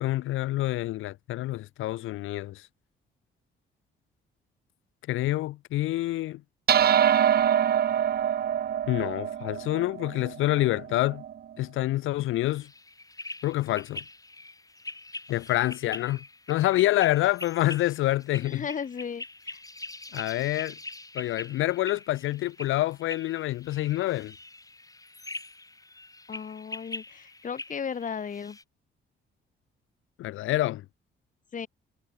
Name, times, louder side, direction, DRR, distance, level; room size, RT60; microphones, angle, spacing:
voice 1, 0.0-2.7 5.1-6.4 8.9-11.2 11.6-12.7 13.4-14.0 15.3-18.7 20.1-20.8 21.1-24.4 30.2-30.8, left 16 dB, 90° left, 2.4 m, -27 dB
sound 1, 6.7-11.3, right 9 dB, 50° right, 0.9 m, -25 dB
sound 2, 12.5-28.6, left 2 dB, 15° left, 7.7 m, -43 dB
voice 2, 18.4-19.6 26.3-28.6 31.5-31.7, left 7 dB, 40° left, 1.8 m, -35 dB
cardioid pair, 90°, 20 cm